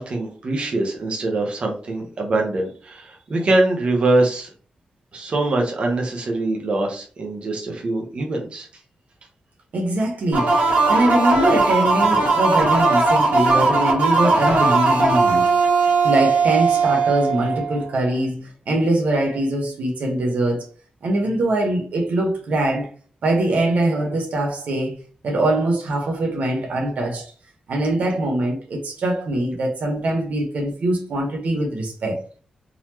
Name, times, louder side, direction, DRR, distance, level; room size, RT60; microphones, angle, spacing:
voice 1, 0.0-4.5 5.1-8.7, right 2 dB, 45° right, 0.9 m, -23 dB
voice 2, 9.7-10.5 10.9-15.5 16.0-20.7 21.0-22.9 23.2-25.0 25.2-27.3 27.7-32.2, right 1 dB, 70° right, 1.0 m, -22 dB
sound 1, 10.3-17.9, right 3 dB, 85° right, 1.5 m, -18 dB
3.9 x 2.9 x 3.0 m
wide cardioid pair, 155°, 3 cm